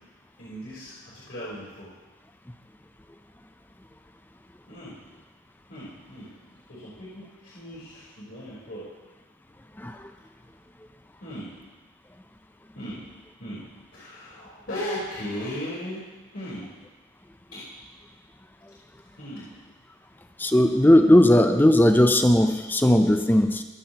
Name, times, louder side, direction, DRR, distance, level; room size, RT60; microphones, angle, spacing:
voice 1, 0.4-1.9 4.7-5.0 5.7-6.3 6.7-8.9 11.2-11.5 12.7-13.0 13.4-13.6 13.9-16.0 16.3-16.7 17.5-17.6 19.1-19.6, equal, 65° left, -10 dB, 3.9 m, -37 dB
voice 2, 20.4-23.6, left 1 dB, 10° left, 7 dB, 0.5 m, -17 dB
22.5 x 7.5 x 2.9 m, 1.3 s
head